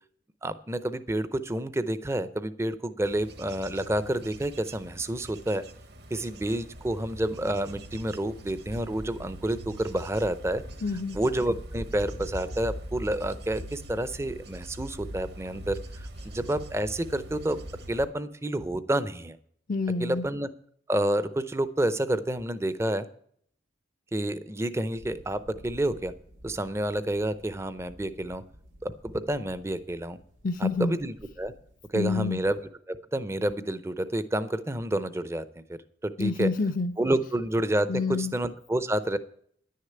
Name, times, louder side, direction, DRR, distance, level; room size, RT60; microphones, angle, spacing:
voice 1, 0.4-5.6 6.1-10.6 11.1-17.6 17.9-19.4 20.0-20.5 20.9-23.1 24.1-26.1 26.4-28.4 28.8-30.2 30.6-31.5 31.9-35.6 36.0-36.5 37.0-39.2, right 1 dB, 15° right, 13 dB, 0.5 m, -29 dB
Bird / Insect / Wind, 3.0-18.0, right 1 dB, 55° right, 1.2 m, -42 dB
voice 2, 10.8-11.2 19.7-20.3 30.4-31.0 31.9-32.4 36.2-37.0 37.9-38.3, left 4 dB, 45° left, 7 dB, 0.5 m, -28 dB
sound 1, 25.0-32.7, equal, 85° right, 2.4 m, -53 dB
10.5 x 6.6 x 8.7 m, 0.63 s
head